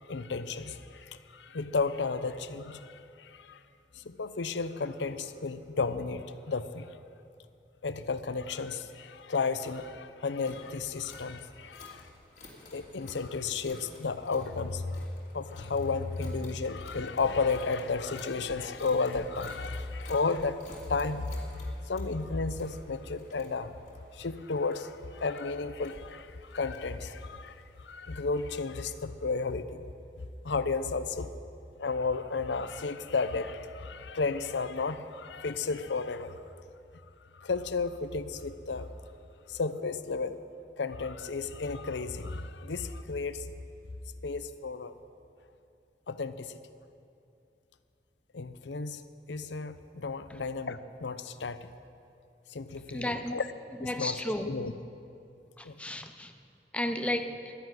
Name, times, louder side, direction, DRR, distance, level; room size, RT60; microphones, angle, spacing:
voice 1, 0.0-3.6 3.9-6.9 7.8-12.1 12.7-15.1 15.3-23.7 24.1-29.8 30.4-31.3 31.8-36.4 37.3-38.9 39.5-40.4 40.8-43.5 44.2-44.9 46.1-46.6 48.3-49.0 49.3-51.7 52.5-53.5 53.8-54.2 54.5-54.7 55.6-55.7, left 4 dB, 85° left, 12 dB, 0.7 m, -33 dB
sound 1, 10.4-28.5, left 1 dB, 40° left, 2.7 m, -53 dB
voice 2, 52.9-53.4 53.8-54.6 55.6-56.3 56.7-57.5, left 1 dB, 5° left, 6 dB, 0.7 m, -33 dB
12.0 x 10.5 x 9.3 m, 2.6 s
head